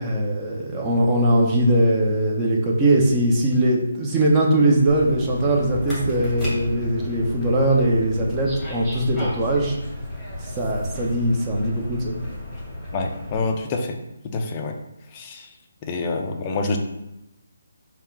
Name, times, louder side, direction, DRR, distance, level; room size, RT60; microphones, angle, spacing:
voice 1, 0.0-9.8 10.6-12.2, right 1 dB, 15° right, -2 dB, 0.7 m, -20 dB
sound 1, 4.9-13.4, left 1 dB, ahead, 1.3 m, -32 dB
voice 2, 12.9-14.0 14.3-14.7 15.1-15.5 15.8-16.8, left 3 dB, 25° left, 3 dB, 0.5 m, -26 dB
3.5 x 2.4 x 4.4 m, 0.90 s
hypercardioid pair, 160°, 0 cm